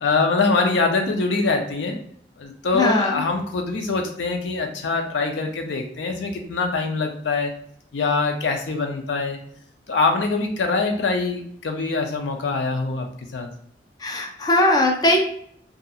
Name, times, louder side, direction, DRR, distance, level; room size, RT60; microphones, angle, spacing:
voice 1, 0.0-2.0 2.4-7.5 7.9-9.4 9.9-13.1 13.3-13.5, left 3 dB, 90° left, 4 dB, 0.5 m, -23 dB
voice 2, 2.7-3.2 14.0-15.2, left 1 dB, 20° left, 1 dB, 0.4 m, -19 dB
2.8 x 2.4 x 2.3 m, 0.65 s
head